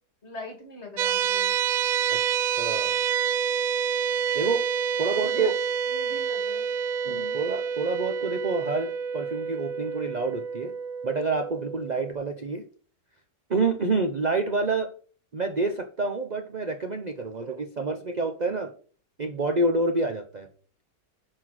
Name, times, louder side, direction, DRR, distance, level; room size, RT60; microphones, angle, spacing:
voice 1, 0.2-1.5 5.1-5.5 5.9-6.8 7.0-7.4, left 2 dB, 40° left, 3 dB, 2.7 m, -41 dB
sound 1, 1.0-12.1, right 7 dB, 70° right, 0.8 m, -28 dB
voice 2, 2.1-3.0 4.3-4.7 5.0-5.6 7.1-10.7 11.0-12.6 13.5-14.9 15.3-18.7 19.2-20.5, right 3 dB, 40° right, 7 dB, 0.6 m, -28 dB
11.0 x 4.4 x 6.0 m, 0.43 s
omnidirectional pair, 1.9 m